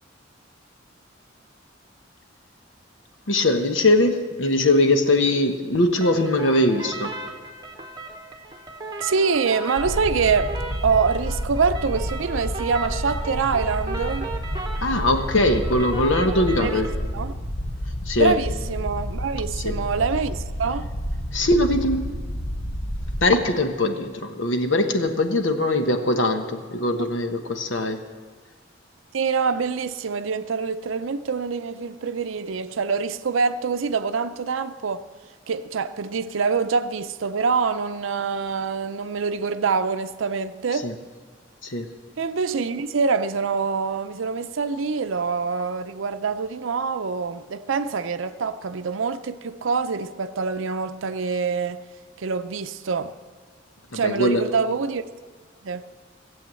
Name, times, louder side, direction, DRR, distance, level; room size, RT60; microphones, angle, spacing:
voice 1, 3.3-7.1 14.8-16.9 18.1-18.3 19.6-19.8 21.3-22.1 23.2-28.0 40.8-40.9 41.6-41.9 53.9-54.4, left 1 dB, 70° left, 1.2 m, -21 dB
sound 1, 6.0-17.0, right 3 dB, 20° right, 1.0 m, -36 dB
voice 2, 9.0-14.3 16.6-16.8 17.1-17.3 18.2-20.9 29.1-35.0 35.5-40.9 42.2-51.8 52.2-53.1 53.9-55.0 55.6-55.8, right 5 dB, 90° right, 0.5 m, -25 dB
sound 2, 9.8-23.3, equal, 35° left, 0.9 m, -30 dB
16.5 x 7.8 x 7.6 m
head